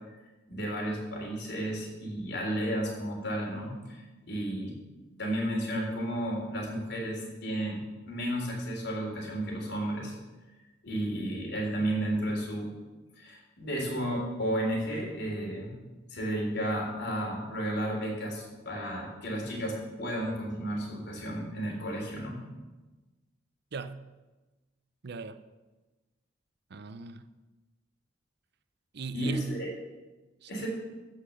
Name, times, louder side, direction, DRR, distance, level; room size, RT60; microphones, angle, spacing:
voice 1, 0.5-4.7 5.2-7.8 8.1-10.1 10.8-12.7 13.2-15.8 16.1-22.4 29.1-29.7 30.5-30.7, right 1 dB, 65° left, 0 dB, 3.5 m, -33 dB
voice 2, 23.7-24.1 25.0-25.4 26.7-27.3 28.9-29.6 30.4-30.7, right 4 dB, 60° right, 12 dB, 0.6 m, -38 dB
14.5 x 5.7 x 6.6 m, 1.2 s
head